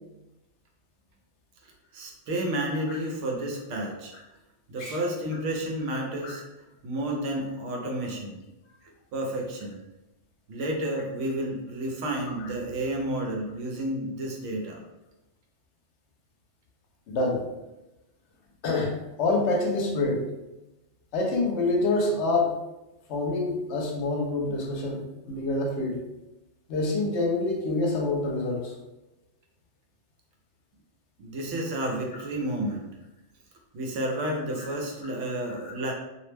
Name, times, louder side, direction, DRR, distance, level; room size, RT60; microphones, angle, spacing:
voice 1, 1.9-4.1 4.7-6.4 6.8-8.4 9.1-9.8 10.5-14.8 31.2-32.9 33.7-35.9, right 1 dB, 90° right, 0 dB, 1.0 m, -31 dB
voice 2, 17.1-17.4 18.6-20.2 21.1-22.6 23.1-25.0 25.3-26.0 26.7-28.7 34.6-34.7, left 2 dB, 75° left, 0 dB, 0.9 m, -26 dB
2.5 x 2.1 x 3.2 m, 0.98 s
omnidirectional pair, 1.2 m